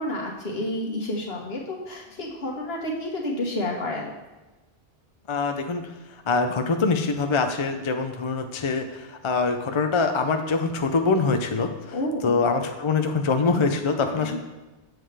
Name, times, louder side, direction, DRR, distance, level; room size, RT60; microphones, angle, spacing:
voice 1, 0.0-4.1 11.9-12.5 14.1-14.4, left 1 dB, 70° left, -1 dB, 1.6 m, -30 dB
voice 2, 5.3-5.8 6.3-11.9 12.2-14.4, left 4 dB, 40° left, 6 dB, 0.5 m, -24 dB
7.4 x 7.4 x 3.3 m, 1.1 s
omnidirectional pair, 1.1 m